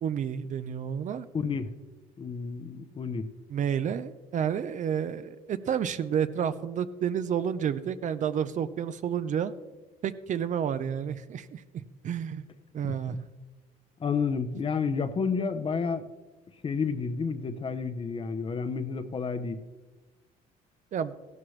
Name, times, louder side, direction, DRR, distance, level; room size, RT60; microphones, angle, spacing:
voice 1, 0.0-1.3 3.5-9.5 10.0-12.5 12.7-13.2 20.9-21.2, right 8 dB, 45° right, 13 dB, 0.6 m, -30 dB
voice 2, 1.3-1.7 2.2-3.3 14.0-16.0 16.6-19.6, left 5 dB, 30° left, 10 dB, 0.8 m, -30 dB
16.0 x 12.0 x 3.2 m, 1.2 s
cardioid pair, 110°, 17 cm